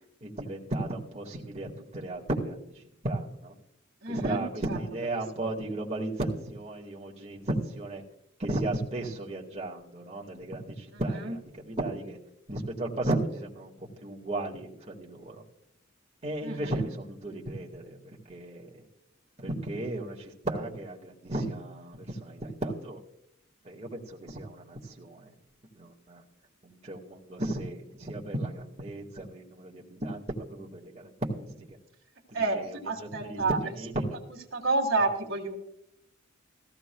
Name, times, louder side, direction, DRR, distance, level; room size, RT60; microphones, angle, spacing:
voice 1, 0.2-3.5 4.1-8.0 8.4-12.2 12.5-15.4 16.2-18.8 19.4-23.0 23.6-25.3 25.8-26.2 26.6-31.8 32.3-34.2, right 1 dB, 35° right, -3 dB, 1.7 m, -35 dB
voice 2, 4.0-4.4 16.4-16.9 32.3-33.6 34.5-35.6, right 3 dB, 65° right, 1 dB, 2.0 m, -29 dB
17.0 x 15.0 x 2.3 m, 0.77 s
head